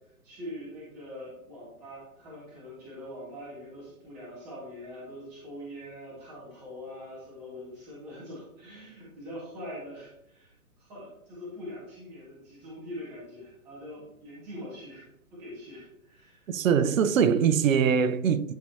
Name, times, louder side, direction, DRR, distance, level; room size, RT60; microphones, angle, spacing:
voice 1, 0.2-16.6, equal, 5° right, 0.4 m, -43 dB
voice 2, 16.5-18.5, right 7 dB, 60° right, 0.7 m, -23 dB
10.5 x 4.7 x 2.7 m
hypercardioid pair, 140°, 44 cm